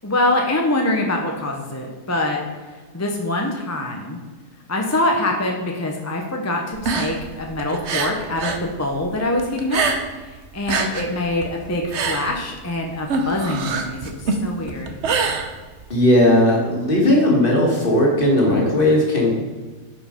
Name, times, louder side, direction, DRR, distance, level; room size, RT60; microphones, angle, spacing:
voice 1, 0.0-2.4 2.9-4.2 4.7-9.8 10.3-15.0, left 1 dB, 15° left, 1 dB, 0.5 m, -24 dB
sound 1, 6.7-8.7 8.9-10.3 10.5-16.0, right 4 dB, 55° right, 1.0 m, -25 dB
voice 2, 15.9-19.3, left 1 dB, 35° left, -2 dB, 2.1 m, -16 dB
9.0 x 5.3 x 5.2 m, 1.3 s
omnidirectional pair, 1.7 m